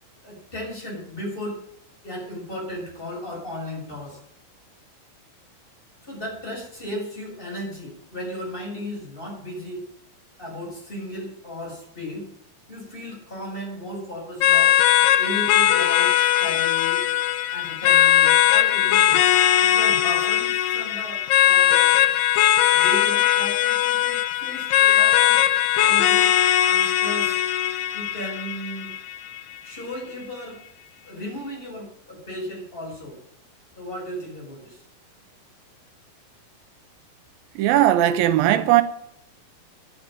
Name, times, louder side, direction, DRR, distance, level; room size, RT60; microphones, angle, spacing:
voice 1, 0.2-1.6 2.0-4.2 6.0-9.8 10.4-12.3 12.7-14.8 15.2-17.0 17.5-19.3 19.6-22.0 22.3-22.4 22.7-25.4 25.7-26.3 26.6-27.4 27.9-28.9 29.6-30.6 31.0-33.2 33.8-34.8, left 1 dB, 15° left, 7.2 m, -35 dB
sound 1, 14.4-29.4, left 12 dB, 75° left, 1.6 m, -19 dB
voice 2, 37.6-38.8, right 13 dB, 90° right, 2.6 m, -18 dB
10.5 x 9.9 x 9.0 m
omnidirectional pair, 4.1 m